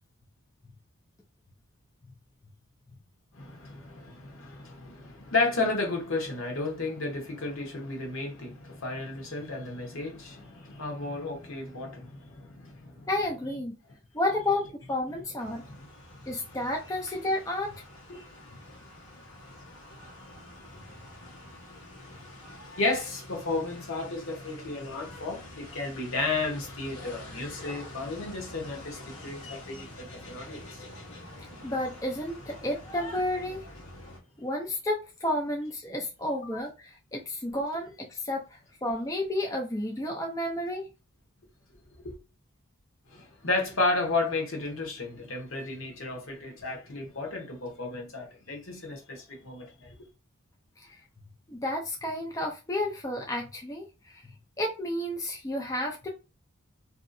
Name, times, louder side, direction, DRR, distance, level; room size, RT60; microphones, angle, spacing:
voice 1, 3.3-13.1 15.1-15.2 15.7-15.8 18.1-18.3 22.8-30.8 36.2-36.6 42.0-42.1 43.1-50.0, left 3 dB, 65° left, 1.0 m, -33 dB
voice 2, 13.1-13.7 14.1-15.6 16.3-17.8 31.6-33.6 34.4-40.9 50.8-51.0 51.5-54.3 54.6-56.1, left 1 dB, 15° left, 0.4 m, -31 dB
sound 1, 15.4-34.2, left 1 dB, 90° left, 1.2 m, -46 dB
3.0 x 2.7 x 2.6 m
head